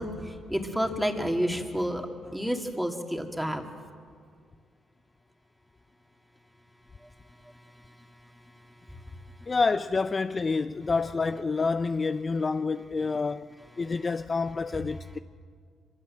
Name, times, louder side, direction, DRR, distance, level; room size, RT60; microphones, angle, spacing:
voice 1, 0.0-3.7, equal, 5° right, 2.6 m, -30 dB
voice 2, 9.5-13.5 13.8-15.2, left 4 dB, 30° left, 0.5 m, -28 dB
25.0 x 23.5 x 7.7 m
cardioid pair, 90°, 0 cm